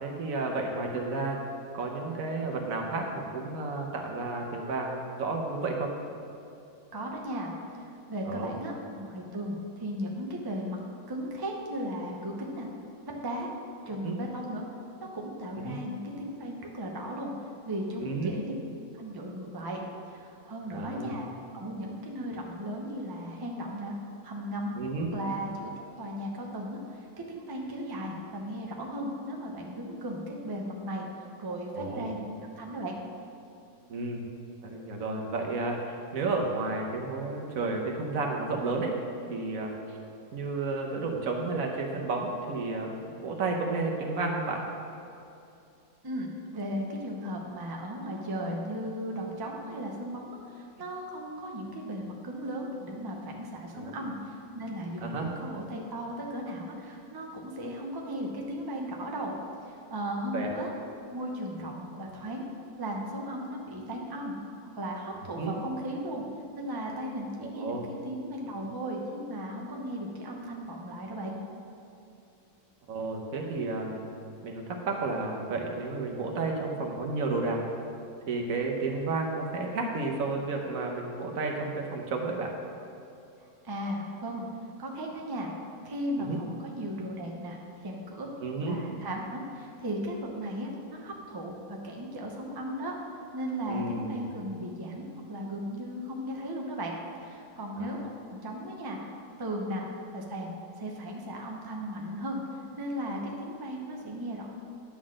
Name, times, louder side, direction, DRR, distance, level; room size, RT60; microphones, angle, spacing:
voice 1, 0.0-1.4 1.7-5.9 8.3-8.5 14.0-14.2 15.5-15.8 18.0-18.3 20.7-21.2 24.8-25.1 31.7-32.1 33.9-34.2 34.6-38.9 39.3-40.0 40.3-44.6 53.7-53.9 55.0-55.3 60.3-60.5 65.4-65.5 67.4-67.8 72.9-74.1 74.4-77.6 78.3-82.5 86.2-86.4 88.4-88.8 93.7-94.3 97.8-97.9, right 3 dB, 65° right, 1 dB, 1.3 m, -32 dB
voice 2, 6.9-7.5 7.8-10.8 11.1-12.7 13.0-13.5 13.9-14.7 15.1-17.3 17.6-18.5 18.9-19.8 20.1-21.3 21.5-23.9 24.2-24.7 25.1-25.7 26.0-31.1 31.4-32.2 32.6-33.0 46.0-59.3 59.6-60.7 61.1-62.5 62.8-64.3 64.8-66.2 66.5-67.8 68.0-71.4 83.4-84.5 84.8-85.5 85.8-88.3 88.6-92.9 93.3-96.9 97.2-99.0 99.4-99.9 100.1-100.5 100.8-102.4 102.8-104.5, equal, 20° right, 0 dB, 0.6 m, -36 dB
9.9 x 3.9 x 6.2 m, 2.7 s
omnidirectional pair, 1.6 m